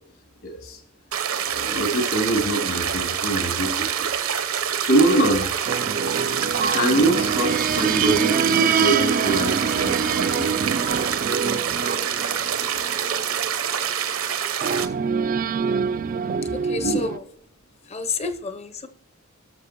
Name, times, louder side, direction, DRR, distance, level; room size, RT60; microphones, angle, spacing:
voice 1, 0.4-0.8 1.4-4.1 4.4-5.5 6.7-10.6 16.8-17.0, right 2 dB, 70° left, 3.0 m, -24 dB
sound 1, 1.1-14.9, right 8 dB, 70° right, 0.8 m, -26 dB
sound 2, 5.7-13.5 14.6-17.2, right 6 dB, 40° right, 0.3 m, -25 dB
voice 2, 16.5-17.3 17.9-18.9, left 4 dB, 30° left, 0.7 m, -29 dB
18.5 x 6.7 x 3.0 m
head